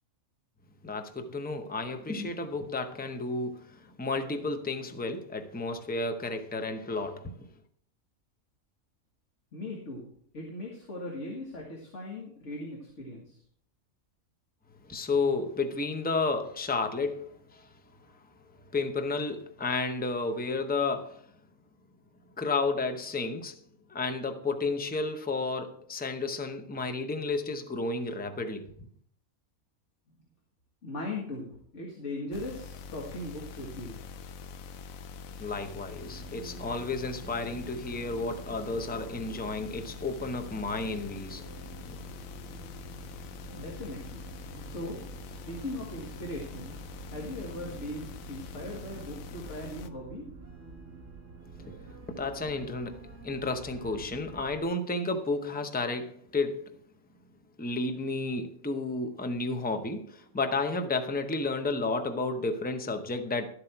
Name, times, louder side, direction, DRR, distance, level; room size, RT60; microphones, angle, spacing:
voice 1, 0.8-7.5 14.8-17.7 18.7-21.3 22.4-23.6 23.9-28.7 35.4-41.5 41.9-42.0 51.6-56.7 57.6-63.5, left 3 dB, 10° left, 0.6 m, -32 dB
voice 2, 9.5-13.4 30.8-34.0 43.5-44.2 44.6-46.8 47.1-50.3, left 1 dB, 60° left, 2.1 m, -39 dB
sound 1, 32.3-49.9, left 5 dB, 85° left, 1.1 m, -44 dB
sound 2, 36.0-54.7, right 5 dB, 65° right, 2.1 m, -49 dB
12.5 x 7.9 x 4.4 m
omnidirectional pair, 1.4 m